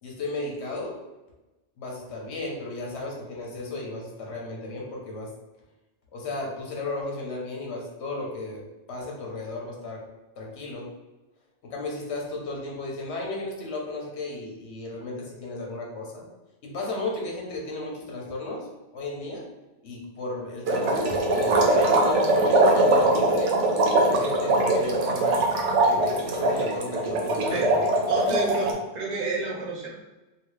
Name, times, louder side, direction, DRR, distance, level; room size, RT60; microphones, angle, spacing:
voice 1, 0.0-1.0 1.8-5.3 6.1-8.6 8.9-10.0 10.4-10.9 11.6-16.3 16.6-18.7 18.9-19.5 19.8-23.5 24.1-25.5 25.8-27.9, left 2 dB, 70° left, -1 dB, 1.1 m, -34 dB
sound 1, 20.7-28.7, right 2 dB, 85° right, 0.9 m, -22 dB
voice 2, 28.1-29.9, right 2 dB, 40° right, -5 dB, 0.9 m, -30 dB
2.8 x 2.7 x 3.1 m, 1.1 s
omnidirectional pair, 1.2 m